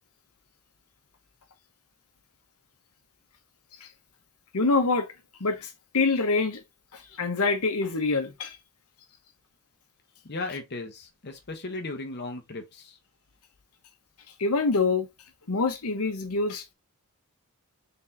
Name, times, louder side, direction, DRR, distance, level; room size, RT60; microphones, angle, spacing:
voice 1, 4.5-5.1 5.4-6.6 6.9-8.6 14.4-15.1 15.5-16.6, left 3 dB, 85° left, 1.0 m, -25 dB
voice 2, 10.2-13.0, left 3 dB, 50° left, 0.9 m, -36 dB
4.0 x 3.9 x 2.7 m
head